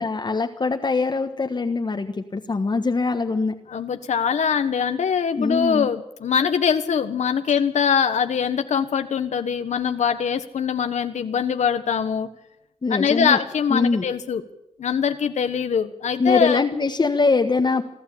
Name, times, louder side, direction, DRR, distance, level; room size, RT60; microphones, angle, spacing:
voice 1, 0.0-3.5 5.4-5.9 12.8-13.4 13.7-14.0 16.2-17.8, left 4 dB, 35° left, 4 dB, 1.4 m, -22 dB
voice 2, 3.7-12.3 12.9-14.4 14.8-16.6, left 7 dB, 75° left, 8 dB, 1.3 m, -23 dB
25.0 x 12.5 x 8.6 m, 0.84 s
cardioid pair, 80°, 12 cm